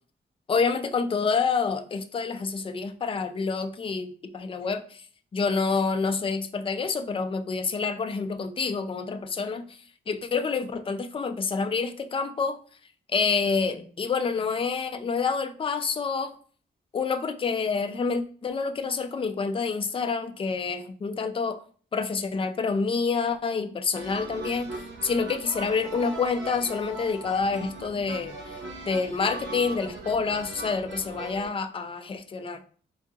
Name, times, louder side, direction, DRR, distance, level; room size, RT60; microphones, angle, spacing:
voice 1, 0.5-5.1 5.3-9.8 10.1-12.6 13.1-16.3 16.9-21.6 21.9-28.6 28.9-32.7, left 5 dB, 30° left, 0.4 m, -28 dB
sound 1, 23.9-31.5, right 2 dB, 80° right, 0.9 m, -39 dB
3.7 x 3.7 x 2.8 m
wide cardioid pair, 135°, 19 cm